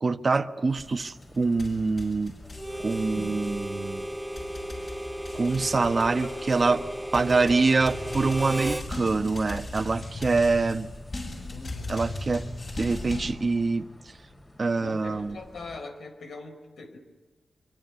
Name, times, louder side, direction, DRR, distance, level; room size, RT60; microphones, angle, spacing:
voice 1, 0.0-2.4 2.8-4.1 5.3-6.8 7.1-10.9 11.9-12.5 12.8-14.1 14.6-15.4, right 3 dB, 45° right, 1.2 m, -25 dB
sound 1, 0.7-15.8, left 1 dB, 25° left, 3.3 m, -51 dB
sound 2, 0.8-13.3, left 2 dB, 40° left, 7.4 m, -39 dB
Harmonica, 2.5-8.9, right 1 dB, 10° right, 1.1 m, -34 dB
voice 2, 6.2-6.8 11.4-11.9 14.8-17.0, left 3 dB, 80° left, 4.3 m, -42 dB
24.5 x 24.5 x 9.8 m
wide cardioid pair, 90°, 0 cm